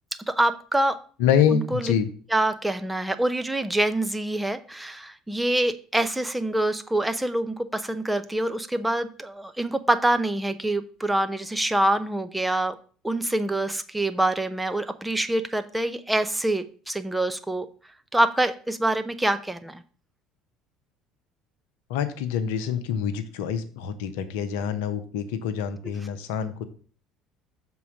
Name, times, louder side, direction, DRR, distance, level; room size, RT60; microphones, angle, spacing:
voice 1, 0.3-1.0 1.5-1.9 2.3-12.8 13.0-17.7 18.1-19.8, right 1 dB, 5° right, 9 dB, 0.7 m, -25 dB
voice 2, 1.2-2.1 21.9-26.6, left 8 dB, 65° left, 10 dB, 0.8 m, -26 dB
7.0 x 3.9 x 6.1 m, 0.42 s
figure-of-eight pair, 60°, 0 cm